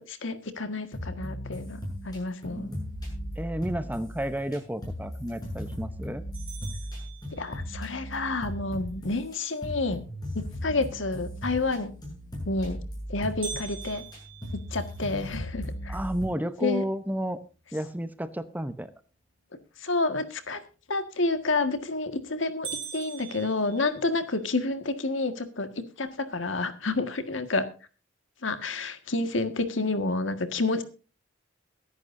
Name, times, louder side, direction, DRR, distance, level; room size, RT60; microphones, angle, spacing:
voice 1, 0.0-2.7 7.3-10.0 10.3-11.9 12.4-12.8 13.1-14.0 14.5-16.0 16.6-16.8 19.8-20.6 20.9-27.7 28.4-30.8, left 3 dB, 75° left, 9 dB, 1.7 m, -29 dB
sound 1, 0.9-9.4 9.6-16.3, equal, 20° left, 7.5 m, -37 dB
voice 2, 3.4-6.2 15.9-17.4 17.7-18.9, right 1 dB, 10° right, 12 dB, 0.8 m, -32 dB
sound 2, 6.3-7.9 13.4-15.6 16.1-16.2 16.7-16.8 17.4-17.8 21.4-21.8 22.2-22.3 22.6-24.4, right 7 dB, 25° right, 7.1 m, -42 dB
22.0 x 11.0 x 2.6 m, 0.34 s
head